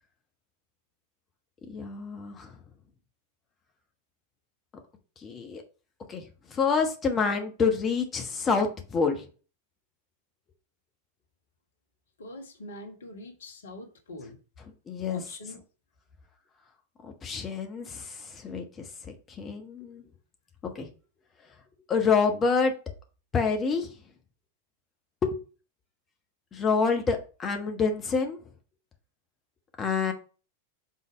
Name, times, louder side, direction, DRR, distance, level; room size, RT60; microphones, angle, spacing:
voice 1, 1.7-2.6 5.2-5.6 6.1-9.2 14.9-15.2 17.0-20.0 20.6-20.9 21.9-22.7 23.3-23.9 25.2-25.4 26.5-28.4 29.8-30.1, left 5 dB, 25° left, 1.1 m, -27 dB
voice 2, 12.2-14.4 15.1-15.6, left 1 dB, 65° left, 1.3 m, -44 dB
5.7 x 3.9 x 5.2 m
figure-of-eight pair, 90°, 0 cm